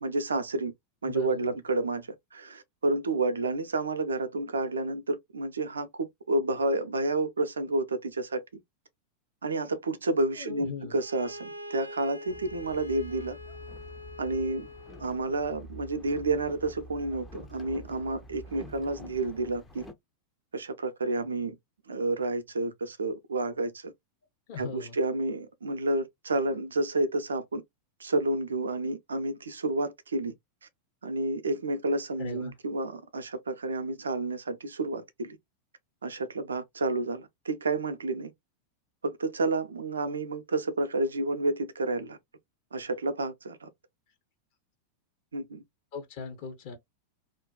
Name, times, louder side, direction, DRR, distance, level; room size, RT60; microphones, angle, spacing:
voice 1, 0.0-0.7 1.0-8.6 9.4-13.4 14.2-14.7 15.0-19.9 20.5-21.6 21.9-23.9 24.6-27.6 28.0-30.3 31.0-35.4 36.0-38.3 39.0-42.2 42.7-43.7 45.3-45.6, right 2 dB, 70° right, 0.5 m, -30 dB
voice 2, 1.0-1.5 10.4-11.0 24.5-25.0 32.2-32.5 45.9-46.8, left 5 dB, 50° left, 0.8 m, -39 dB
Bowed string instrument, 10.9-15.2, left 2 dB, 85° left, 0.4 m, -44 dB
Boat Water vehicle, 12.3-19.9, equal, 15° left, 0.5 m, -47 dB
2.5 x 2.2 x 2.3 m
figure-of-eight pair, 90°, 0 cm